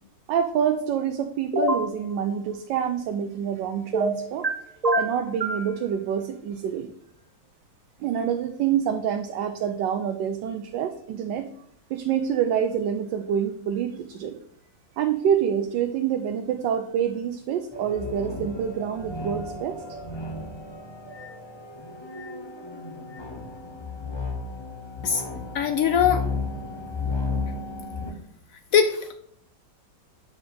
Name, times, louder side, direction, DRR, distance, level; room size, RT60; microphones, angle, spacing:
voice 1, 0.3-4.5 4.9-6.9 8.0-11.5 11.9-14.4 15.0-19.8, right 8 dB, 80° right, 6 dB, 1.2 m, -27 dB
sound 1, 1.5-1.9 3.9-4.5 4.8-5.6, right 1 dB, 35° right, 0.6 m, -24 dB
sound 2, 17.7-28.1, left 3 dB, 40° left, 0.3 m, -34 dB
voice 2, 25.5-26.2 28.7-29.1, left 7 dB, 85° left, 8 dB, 0.7 m, -21 dB
7.3 x 4.9 x 3.9 m, 0.68 s
omnidirectional pair, 2.0 m